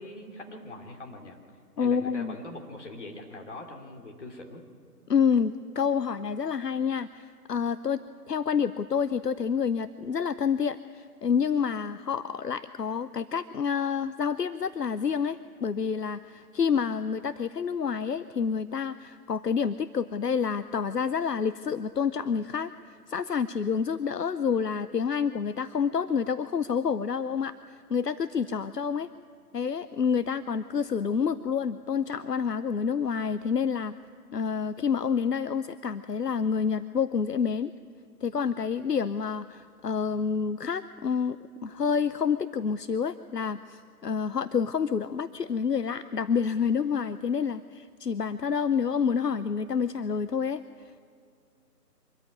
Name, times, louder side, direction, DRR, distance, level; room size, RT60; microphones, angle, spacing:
voice 1, 0.0-1.4 1.8-4.6, left 2 dB, 45° left, 1 dB, 3.1 m, -42 dB
voice 2, 1.8-2.3 5.1-22.7 23.1-29.1 29.5-33.9 34.3-37.7 38.2-50.6, left 6 dB, 75° left, 14 dB, 0.7 m, -28 dB
24.0 x 14.0 x 9.5 m, 2.2 s
figure-of-eight pair, 150°, 49 cm